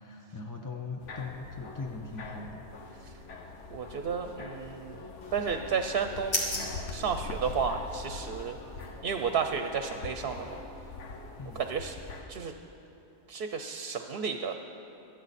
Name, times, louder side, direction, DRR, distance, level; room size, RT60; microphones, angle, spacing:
voice 1, 0.0-3.0 11.4-11.6, left 4 dB, 25° left, 2 dB, 0.5 m, -40 dB
sound 1, 1.0-12.2, left 3 dB, 80° left, 1.3 m, -43 dB
voice 2, 3.7-8.6 9.0-10.6 11.5-12.0 12.3-12.5 13.3-14.5, right 6 dB, 60° right, 7 dB, 0.8 m, -32 dB
sound 2, 5.2-8.0, left 1 dB, 50° left, 2.1 m, -37 dB
25.0 x 9.0 x 4.1 m, 2.9 s
omnidirectional pair, 1.2 m